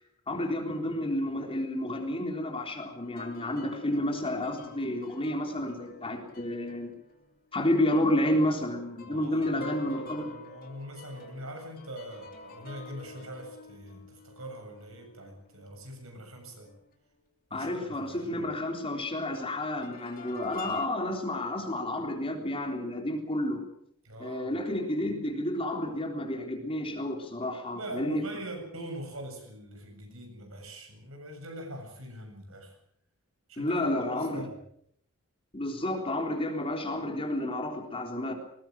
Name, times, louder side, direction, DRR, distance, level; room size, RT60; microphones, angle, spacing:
voice 1, 0.3-6.9 7.5-10.3 17.5-23.6 24.2-28.3 33.6-34.5 35.5-38.3, left 1 dB, 25° left, 3 dB, 3.7 m, -30 dB
sound 1, 3.0-8.0 8.3-16.1 16.7-16.8 19.4-20.9, left 3 dB, 45° left, 3.2 m, -48 dB
voice 2, 9.1-16.7 17.5-18.4 24.0-24.6 27.7-32.7 33.5-33.9 34.3-34.5, right 1 dB, 70° right, 4 dB, 7.4 m, -43 dB
20.5 x 20.0 x 7.6 m, 0.69 s
head